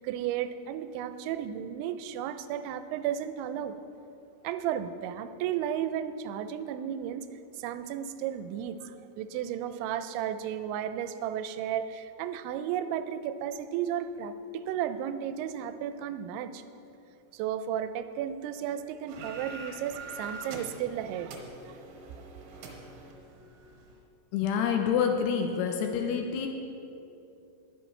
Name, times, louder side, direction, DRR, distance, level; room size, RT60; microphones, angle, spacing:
voice 1, 0.0-3.8 4.4-7.3 7.6-16.6 17.3-21.4, right 9 dB, 90° right, 11 dB, 2.9 m, -34 dB
sound 1, 19.1-24.0, right 3 dB, 75° right, 3.1 m, -44 dB
voice 2, 24.3-26.5, left 7 dB, 80° left, 4 dB, 2.5 m, -27 dB
20.0 x 7.9 x 3.2 m, 2.8 s
omnidirectional pair, 5.2 m